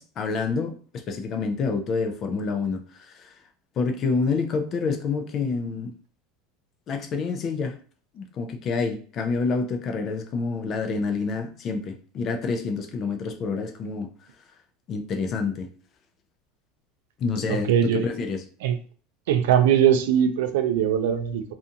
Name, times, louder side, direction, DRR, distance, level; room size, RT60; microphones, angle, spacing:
voice 1, 0.0-3.3 3.8-5.9 6.9-7.8 8.1-14.1 14.9-15.7 17.2-18.4, left 4 dB, 25° left, 6 dB, 0.3 m, -28 dB
voice 2, 17.5-18.1 18.6-18.8 19.3-21.4, right 9 dB, 85° right, 7 dB, 0.4 m, -21 dB
2.5 x 2.3 x 2.7 m, 0.41 s
supercardioid pair, 175°, 0 cm